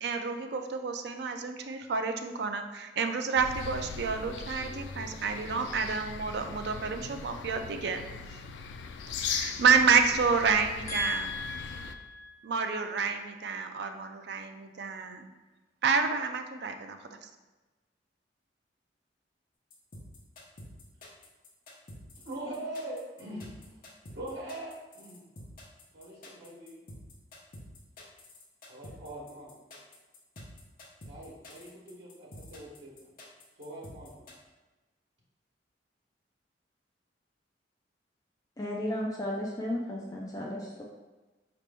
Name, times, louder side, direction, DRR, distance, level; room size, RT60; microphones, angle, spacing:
voice 1, 0.0-8.0 9.2-11.3 12.4-15.3 15.8-17.0, right 5 dB, 65° right, 6 dB, 0.4 m, -29 dB
sound 1, 3.4-11.9, left 5 dB, 80° left, 0.3 m, -39 dB
voice 2, 10.9-12.3 38.6-40.8, left 1 dB, 20° left, -2 dB, 0.4 m, -34 dB
sound 2, 19.7-34.3, left 1 dB, 50° left, 0.9 m, -48 dB
voice 3, 22.2-23.6 24.1-25.2 25.9-26.8 28.7-29.5 31.1-32.9 33.6-34.2, right 1 dB, 85° right, -5 dB, 1.1 m, -42 dB
4.9 x 2.9 x 3.4 m, 1.2 s
head